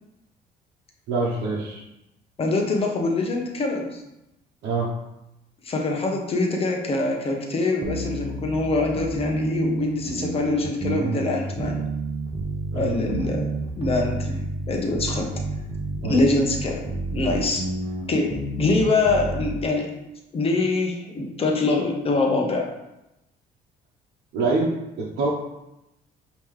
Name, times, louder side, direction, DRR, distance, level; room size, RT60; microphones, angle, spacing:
voice 1, 1.1-1.8 4.6-4.9 12.7-13.0 16.0-16.2 24.3-24.7 25.0-25.3, right 3 dB, 80° right, -6 dB, 0.9 m, -25 dB
voice 2, 2.4-4.0 5.6-11.8 12.7-15.3 16.1-16.8 17.1-17.6 18.1-19.9 20.3-22.7, left 2 dB, 35° left, 1 dB, 0.9 m, -24 dB
sound 1, 7.8-19.6, right 2 dB, 30° right, 0.8 m, -30 dB
5.4 x 3.0 x 3.2 m, 0.90 s
cardioid pair, 110°, 17 cm